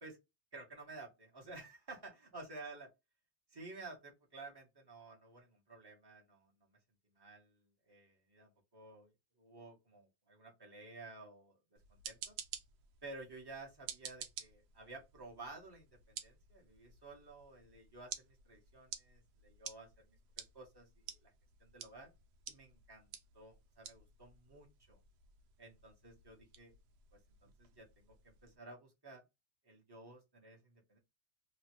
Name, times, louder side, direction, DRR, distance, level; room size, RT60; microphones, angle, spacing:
voice 1, 0.5-2.9 3.5-6.5 7.1-11.6 12.0-12.4 13.0-20.1 20.4-21.3 21.6-22.1 22.5-23.1 23.3-25.0 25.6-26.7 27.1-29.2 29.6-31.0, right 3 dB, 20° right, 0.6 m, -53 dB
sound 1, 11.8-28.6, right 8 dB, 75° right, 1.1 m, -52 dB
3.1 x 2.2 x 2.9 m
omnidirectional pair, 2.0 m